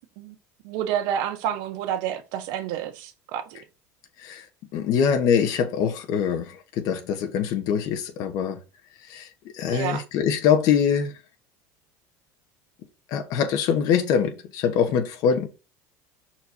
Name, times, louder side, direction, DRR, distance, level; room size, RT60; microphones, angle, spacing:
voice 1, 0.6-3.6 9.7-10.0, right 10 dB, 65° right, 1.4 m, -29 dB
voice 2, 4.7-8.6 9.1-9.3 9.5-11.1 13.1-15.5, left 7 dB, 55° left, 1.4 m, -23 dB
6.3 x 4.5 x 4.4 m
cardioid pair, 150°, 7 cm